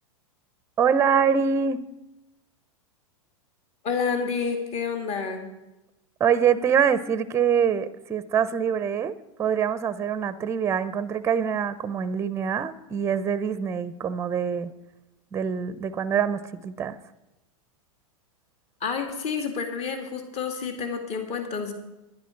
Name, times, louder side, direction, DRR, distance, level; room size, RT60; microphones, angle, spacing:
voice 1, 0.8-1.8 6.2-14.7 15.3-17.0, right 7 dB, 15° right, 15 dB, 0.7 m, -24 dB
voice 2, 3.8-5.5 18.8-21.7, left 5 dB, 35° left, 5 dB, 2.3 m, -29 dB
11.5 x 10.5 x 5.9 m, 0.99 s
hypercardioid pair, 120°, 18 cm